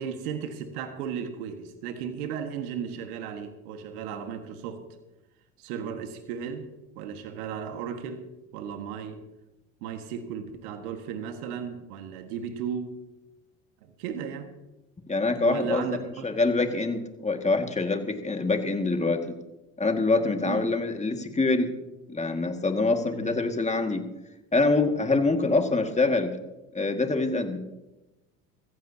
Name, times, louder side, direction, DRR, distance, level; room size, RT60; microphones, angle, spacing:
voice 1, 0.0-4.8 5.6-6.7 7.0-8.3 8.5-9.2 9.8-13.0 13.8-14.5 15.4-16.3 20.5-20.7 23.1-23.4, right 7 dB, 75° right, 7 dB, 1.8 m, -35 dB
voice 2, 15.1-15.8 16.2-19.2 19.8-21.7 22.1-24.1 24.5-26.4 26.7-27.6, left 3 dB, 15° left, 5 dB, 2.0 m, -25 dB
23.0 x 15.0 x 2.8 m, 1.0 s
hypercardioid pair, 75°, 44 cm